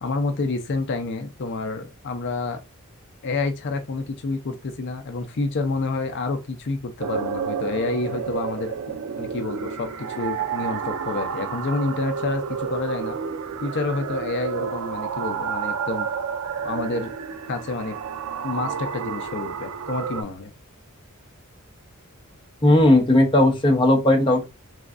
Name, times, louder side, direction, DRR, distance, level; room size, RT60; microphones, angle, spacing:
voice 1, 0.0-2.6 3.2-8.7 9.2-13.2 13.6-16.1 16.6-17.1 17.5-18.0 18.4-20.5, left 3 dB, 55° left, 0.5 m, -28 dB
sound 1, 7.0-20.2, right 7 dB, 70° right, 0.4 m, -30 dB
voice 2, 22.6-24.5, left 1 dB, 25° left, 0.8 m, -17 dB
3.4 x 3.1 x 2.4 m
head